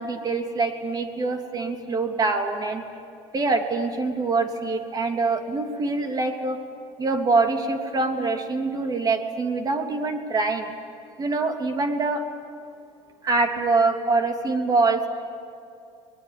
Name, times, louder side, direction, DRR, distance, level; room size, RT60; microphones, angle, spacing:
voice 1, 0.0-2.8 3.3-6.6 7.0-10.7 11.2-12.2 13.2-15.1, right 3 dB, 30° right, 5 dB, 3.1 m, -24 dB
24.0 x 20.5 x 9.8 m, 2.6 s
supercardioid pair, 100°, 12 cm